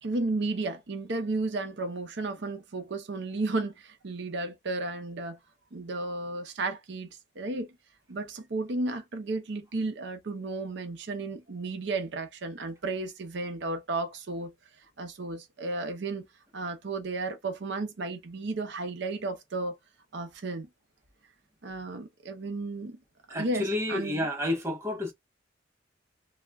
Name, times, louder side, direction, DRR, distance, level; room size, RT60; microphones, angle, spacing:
voice 1, 0.0-5.4 5.7-7.7 8.1-14.5 15.0-16.3 16.5-19.8 20.1-20.7 21.6-23.0 23.3-24.3, right 2 dB, 60° right, 0.6 m, -33 dB
voice 2, 23.3-25.1, left 1 dB, 15° right, 0.6 m, -30 dB
2.2 x 2.1 x 3.3 m
head